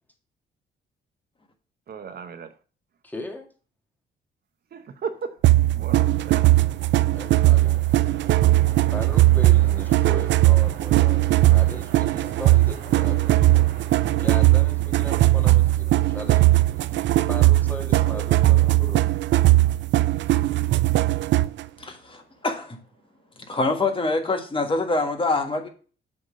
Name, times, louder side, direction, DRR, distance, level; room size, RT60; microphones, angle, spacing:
voice 1, 1.9-2.5 4.7-5.4 5.7-6.5, right 5 dB, 50° right, 0.8 m, -35 dB
voice 2, 3.0-3.5 7.1-8.0 8.9-13.7 14.2-16.9 17.3-19.0, left 2 dB, 10° left, 1.7 m, -38 dB
sound 1, 5.4-21.6, right 16 dB, 65° right, 0.4 m, -19 dB
Train, 5.8-23.0, right 5 dB, 85° right, 1.9 m, -45 dB
voice 3, 21.8-22.8 23.4-25.7, left 3 dB, 25° left, 1.5 m, -25 dB
7.8 x 3.6 x 6.2 m
cardioid pair, 90°, 20 cm